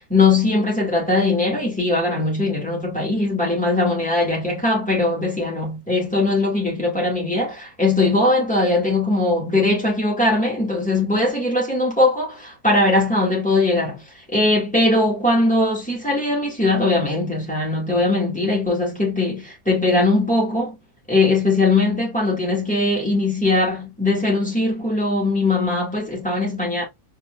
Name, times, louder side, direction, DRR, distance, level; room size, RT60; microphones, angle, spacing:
voice 1, 0.1-20.8 21.1-26.9, left 2 dB, 5° left, 2.1 m, -20 dB
4.5 x 3.6 x 2.4 m
omnidirectional pair, 1.6 m